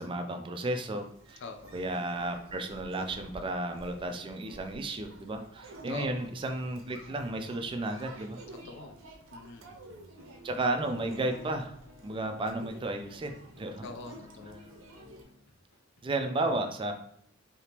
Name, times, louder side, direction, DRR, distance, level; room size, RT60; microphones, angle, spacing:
voice 1, 0.0-1.4 1.7-8.4 10.4-11.8 12.0-13.9 16.0-16.9, right 2 dB, 25° right, 6 dB, 0.4 m, -33 dB
sound 1, 0.9-15.2, right 2 dB, 80° right, 0.6 m, -51 dB
voice 2, 1.4-1.8 5.9-6.3 8.6-9.0 9.3-9.8 13.8-14.6, left 4 dB, 60° left, 6 dB, 0.4 m, -44 dB
sound 2, 9.7-16.1, left 3 dB, 85° left, 0.9 m, -56 dB
3.4 x 2.8 x 2.8 m, 0.68 s
head